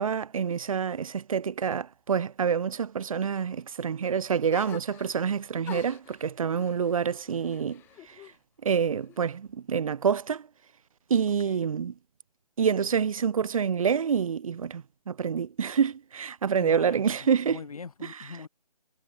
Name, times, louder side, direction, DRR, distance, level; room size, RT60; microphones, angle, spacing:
voice 1, 0.0-8.2 8.6-10.5 11.1-11.9 12.6-17.6, right 7 dB, 55° right, 0.4 m, -27 dB
sound 1, 4.5-5.3 5.6-8.4 8.7-9.5, left 14 dB, 10° left, 1.1 m, -46 dB
voice 2, 16.5-18.5, left 5 dB, 60° left, 5.3 m, -43 dB
figure-of-eight pair, 145°, 21 cm